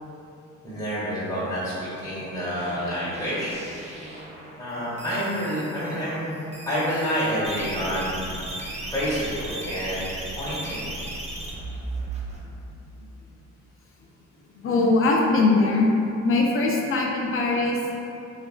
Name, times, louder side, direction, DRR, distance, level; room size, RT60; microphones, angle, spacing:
voice 1, 0.6-3.6 4.6-6.3 6.6-8.2 8.9-10.9, equal, 10° left, -11 dB, 1.3 m, -28 dB
sound 1, 2.6-4.7 5.0-6.0 6.5-12.4, right 2 dB, 20° right, 0.5 m, -36 dB
voice 2, 14.6-15.9 16.2-17.8, left 3 dB, 45° left, -1 dB, 0.5 m, -21 dB
3.3 x 2.3 x 2.2 m, 2.7 s
cardioid pair, 90°, 30 cm